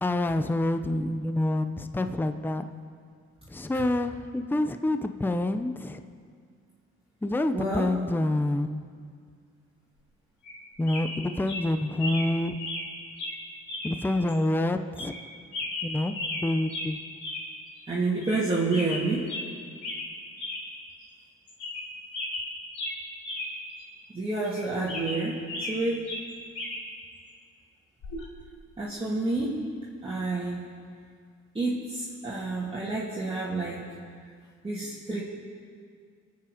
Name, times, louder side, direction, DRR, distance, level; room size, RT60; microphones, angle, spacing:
voice 1, 0.0-2.7 3.5-6.0 7.2-8.9 10.8-12.6 13.8-15.2 15.8-17.0, left 1 dB, 5° left, 8 dB, 0.6 m, -27 dB
voice 2, 7.5-7.9 17.9-19.3 24.1-25.4 25.7-26.1 28.8-29.6 30.0-30.7 31.5-33.9 34.6-35.2, right 2 dB, 20° right, -7 dB, 2.4 m, -29 dB
sound 1, 10.4-10.6 10.9-11.2 11.5-11.6 12.0-12.3 12.6-12.9 13.2-13.4 13.7-13.9 14.3-14.4 15.0-15.2 15.5-16.4 16.7-16.9 17.2-17.5 17.8-17.9 18.2-18.4 18.7-19.5 19.8-20.1 20.4-20.6 21.0-21.1 21.5-21.9 22.1-23.5 23.8-23.9 24.4-25.8 26.1-26.8 28.0-28.2, left 2 dB, 70° left, 3.6 m, -35 dB
22.0 x 8.6 x 5.0 m, 2.1 s
cardioid pair, 90°, 30 cm